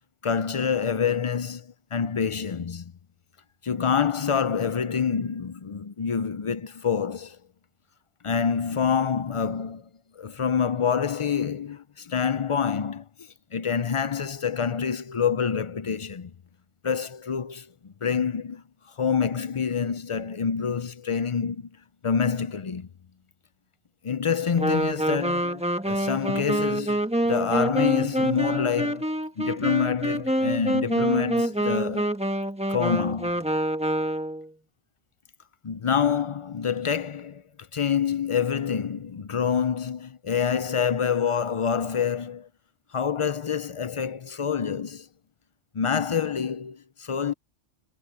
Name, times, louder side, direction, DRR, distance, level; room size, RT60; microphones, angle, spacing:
voice 1, 0.2-2.9 3.6-7.4 8.2-9.8 10.2-13.0 13.5-16.3 16.8-18.6 19.0-21.7 22.0-22.9 24.0-32.1 32.7-33.4 35.6-37.4 37.7-42.5 42.9-45.1 45.7-47.3, left 7 dB, 55° left, 0.3 m, -27 dB
Wind instrument woodwind instrument, 24.6-34.5, right 1 dB, 5° right, 1.2 m, -26 dB
omnidirectional pair, 1.3 m